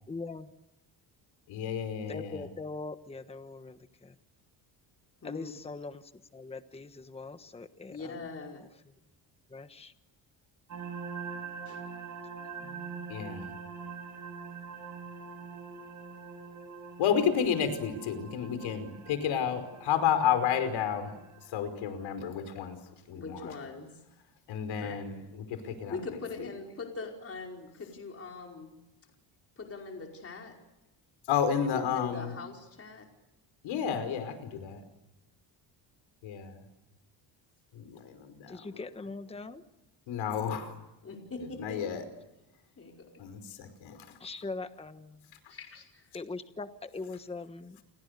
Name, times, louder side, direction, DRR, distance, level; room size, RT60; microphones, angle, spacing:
voice 1, 0.1-0.5 2.1-4.1 5.2-6.0 6.3-8.2 9.5-9.9 12.6-13.2 38.5-39.6 44.2-45.2 46.1-47.8, left 3 dB, 15° left, 10 dB, 1.3 m, -41 dB
voice 2, 1.5-2.4 13.1-13.5 17.0-21.1 21.5-22.8 23.1-23.5 24.5-26.0 31.3-32.3 33.6-34.8 36.2-36.6 37.7-38.6 40.1-40.7 41.6-42.0 43.2-44.0, left 8 dB, 85° left, 10 dB, 5.2 m, -31 dB
voice 3, 5.2-5.5 7.9-8.6 11.6-11.8 23.1-24.0 24.8-25.0 25.9-28.7 29.6-30.5 31.7-33.0 41.0-42.0 42.8-43.3 45.5-46.1, left 4 dB, 30° left, 1 dB, 5.0 m, -42 dB
sound 1, 10.7-21.5, right 5 dB, 40° right, 7.6 m, -44 dB
29.5 x 29.0 x 6.8 m, 0.94 s
cardioid pair, 135°, 45 cm